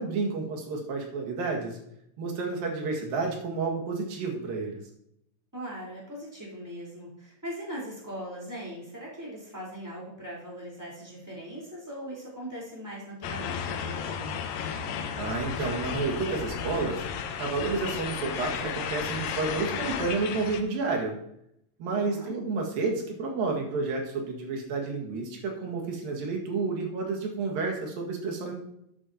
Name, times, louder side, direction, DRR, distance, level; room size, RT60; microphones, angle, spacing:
voice 1, 0.0-1.8 2.2-4.8 15.2-17.0 17.4-21.2 21.8-28.5, right 4 dB, 80° right, 1 dB, 3.6 m, -30 dB
voice 2, 5.5-14.4 21.8-22.3, equal, 5° right, -6 dB, 3.4 m, -40 dB
sound 1, 13.2-20.6, left 7 dB, 85° left, 2.6 m, -33 dB
12.5 x 8.5 x 2.8 m, 0.76 s
omnidirectional pair, 4.0 m